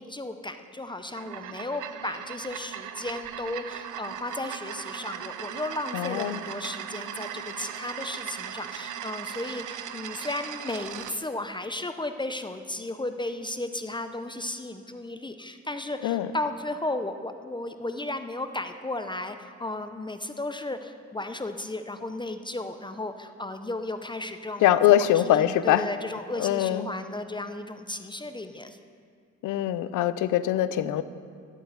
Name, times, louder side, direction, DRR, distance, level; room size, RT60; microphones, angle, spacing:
voice 1, 0.0-28.8, left 2 dB, 15° left, 8 dB, 0.6 m, -34 dB
sound 1, 1.0-11.2, right 10 dB, 80° right, 0.8 m, -38 dB
voice 2, 5.9-6.4 16.0-16.3 24.6-25.9 26.4-26.9 29.4-31.0, left 12 dB, 85° left, 14 dB, 0.6 m, -23 dB
12.5 x 8.5 x 8.1 m, 2.2 s
cardioid pair, 90°, 30 cm